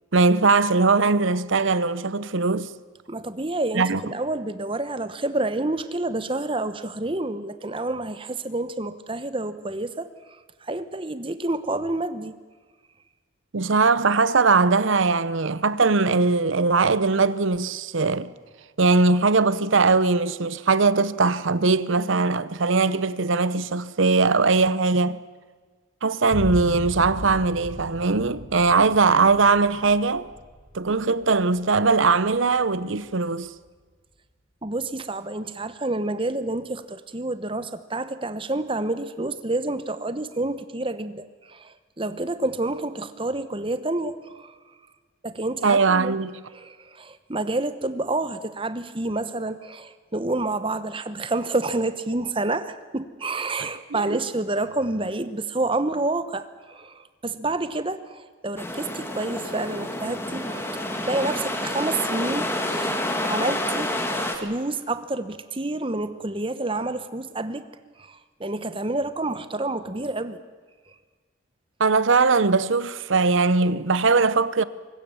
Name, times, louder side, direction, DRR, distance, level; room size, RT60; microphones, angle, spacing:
voice 1, 0.1-2.7 3.7-4.0 13.5-18.3 18.8-25.2 26.0-30.3 30.7-33.5 45.6-46.3 53.9-54.2 71.8-74.6, right 4 dB, 65° right, 0.8 m, -20 dB
voice 2, 3.1-10.1 10.6-12.3 28.8-29.0 34.6-44.5 45.2-46.2 46.5-67.7 68.0-70.4, right 2 dB, 25° right, 1.0 m, -29 dB
sound 1, 26.3-33.7, left 1 dB, 35° left, 6.6 m, -37 dB
sound 2, 58.6-64.4, left 1 dB, 10° left, 1.8 m, -28 dB
24.0 x 20.5 x 7.1 m
head